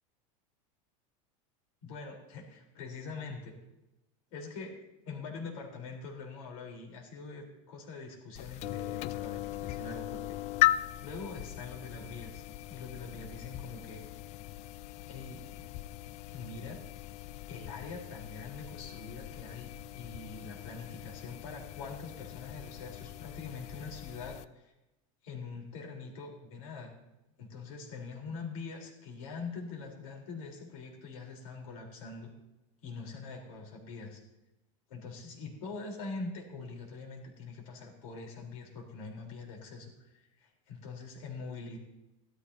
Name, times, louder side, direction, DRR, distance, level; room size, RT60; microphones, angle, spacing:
voice 1, 1.8-3.6 4.3-4.8 5.0-10.4 11.0-14.0 15.1-15.4 16.3-16.8 17.5-24.7 25.2-26.9 27.4-32.4 32.8-34.2 34.9-41.8, left 4 dB, 85° left, 0 dB, 3.9 m, -44 dB
sound 1, 8.3-24.4, left 15 dB, 40° left, 0.4 m, -38 dB
16.5 x 13.0 x 2.8 m, 0.95 s
supercardioid pair, 135°, 17 cm